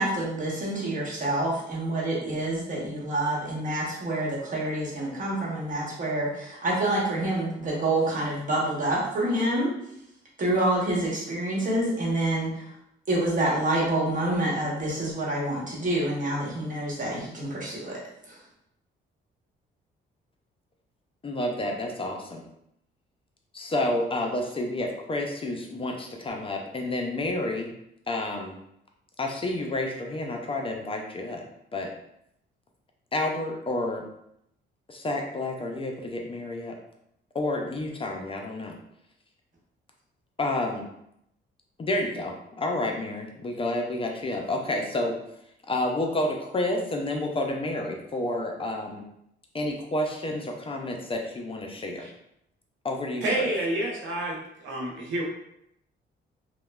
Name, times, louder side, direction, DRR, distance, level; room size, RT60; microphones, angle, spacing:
voice 1, 0.0-9.8 10.4-12.7 13.1-18.0 18.3-18.4, right 1 dB, 40° right, -4 dB, 1.0 m, -27 dB
voice 2, 21.2-22.4 23.5-27.7 28.1-28.6 29.2-31.4 31.7-31.9 33.1-34.0 34.9-36.8 37.3-38.8 40.4-40.9 41.8-45.2 45.7-49.0 49.5-52.0 52.8-53.5, left 1 dB, 30° left, 2 dB, 0.4 m, -30 dB
voice 3, 53.2-54.4 54.6-55.2, right 1 dB, 75° right, -1 dB, 0.7 m, -28 dB
3.0 x 2.1 x 2.2 m, 0.77 s
cardioid pair, 90°, 20 cm